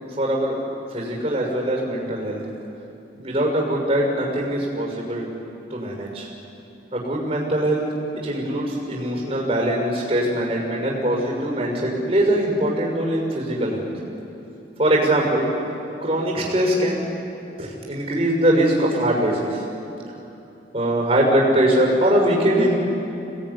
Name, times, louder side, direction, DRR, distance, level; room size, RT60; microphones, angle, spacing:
voice 1, 0.2-0.5 0.9-2.4 3.1-5.3 5.7-6.3 6.9-7.8 8.2-13.9 14.8-15.5 16.0-17.0 17.6-19.6 20.7-22.8, right 1 dB, 30° right, -1 dB, 6.2 m, -22 dB
26.5 x 19.5 x 9.9 m, 2.9 s
head